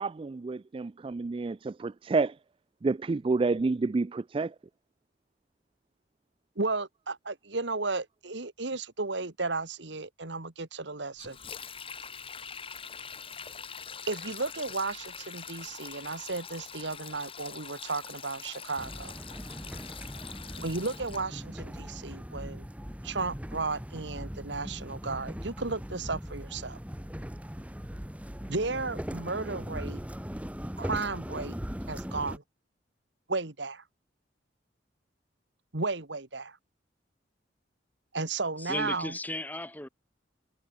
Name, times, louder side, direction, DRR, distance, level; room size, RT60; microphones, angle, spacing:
voice 1, 0.0-2.4 2.8-4.5, right 3 dB, 30° right, 0.3 m, -29 dB
voice 2, 6.6-11.4 14.1-19.1 20.6-22.6 23.0-26.8 28.5-30.0 30.8-31.6 31.9-32.4 33.3-33.8 35.7-36.6 38.1-39.1, right 3 dB, 70° right, 1.9 m, -34 dB
Sink (filling or washing), 11.2-21.2, left 6 dB, 30° left, 5.6 m, -44 dB
sound 1, 18.8-32.4, equal, 5° right, 1.6 m, -39 dB
voice 3, 38.6-39.9, left 1 dB, 10° left, 2.7 m, -35 dB
head